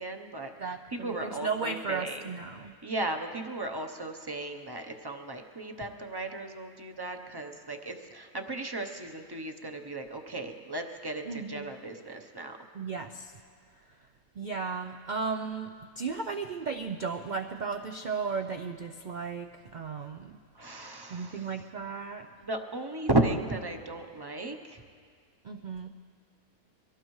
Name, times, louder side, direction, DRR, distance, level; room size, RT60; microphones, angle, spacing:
voice 1, 0.0-2.3 2.8-12.6 20.6-21.6 22.4-24.8, right 2 dB, 25° right, 4 dB, 0.7 m, -35 dB
voice 2, 0.6-2.7 11.3-11.7 12.7-13.3 14.4-15.7 16.0-20.3 21.1-22.3 25.4-25.9, right 5 dB, 80° right, 5 dB, 0.4 m, -35 dB
23.5 x 17.0 x 3.1 m, 2.1 s
omnidirectional pair, 1.5 m